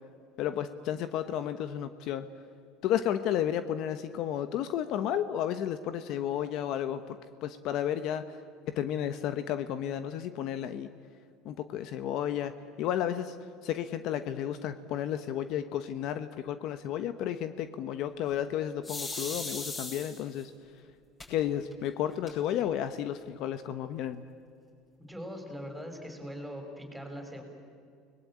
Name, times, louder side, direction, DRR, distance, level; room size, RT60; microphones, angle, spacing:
voice 1, 0.4-2.3 2.8-7.2 7.4-8.4 8.7-10.9 11.4-12.5 12.8-13.4 13.6-20.5 21.3-24.2, left 10 dB, 55° left, 10 dB, 1.1 m, -32 dB
sound 1, 18.8-20.4 21.2-21.3 21.7-21.8 22.1-22.7, left 2 dB, 20° left, 7.6 m, -38 dB
voice 2, 25.0-27.4, equal, 5° right, 3 dB, 5.4 m, -41 dB
30.0 x 20.5 x 8.8 m, 2.4 s
cardioid pair, 135°, 0 cm